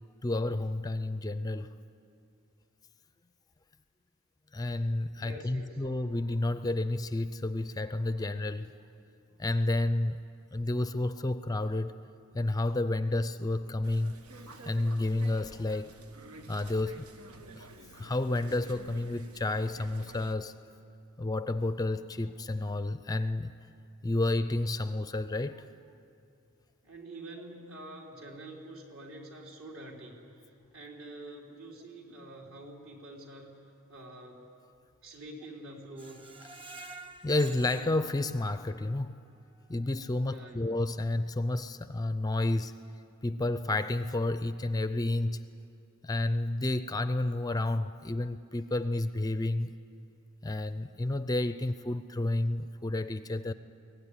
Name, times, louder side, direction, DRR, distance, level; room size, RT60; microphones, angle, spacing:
voice 1, 0.2-1.7 4.5-8.7 9.4-10.2 10.5-11.9 12.3-14.2 14.7-16.0 16.5-17.1 17.5-17.7 17.9-20.5 21.2-23.5 24.0-25.6 36.8-36.9 37.2-39.1 39.7-42.8 43.2-45.4 46.0-49.7 50.4-53.5, left 2 dB, 15° left, 0.4 m, -30 dB
voice 2, 5.2-5.8 26.8-33.6 33.9-34.4 35.0-36.2 40.2-40.8, right 1 dB, 65° right, 3.8 m, -47 dB
sound 1, 13.8-20.4, right 3 dB, 90° right, 1.3 m, -50 dB
Screech, 36.0-39.0 39.4-39.5 39.9-40.0, right 3 dB, 25° right, 1.0 m, -49 dB
23.0 x 17.0 x 9.9 m
head